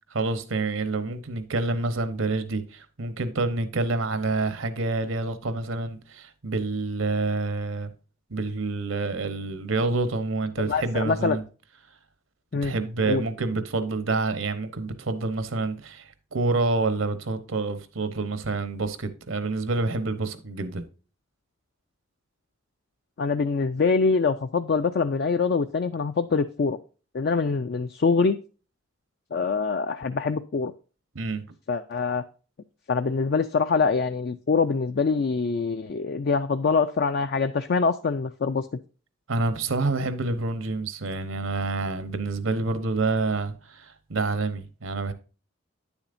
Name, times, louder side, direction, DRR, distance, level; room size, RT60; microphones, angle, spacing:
voice 1, 0.1-7.9 8.3-11.4 12.6-20.9 31.1-31.4 39.3-45.1, right 3 dB, 80° right, 1.0 m, -28 dB
voice 2, 10.7-11.4 12.5-12.7 13.1-13.2 23.2-26.8 27.1-28.4 29.3-30.7 31.7-32.2 32.9-38.7, left 4 dB, 50° left, 0.4 m, -24 dB
9.6 x 7.1 x 2.6 m
head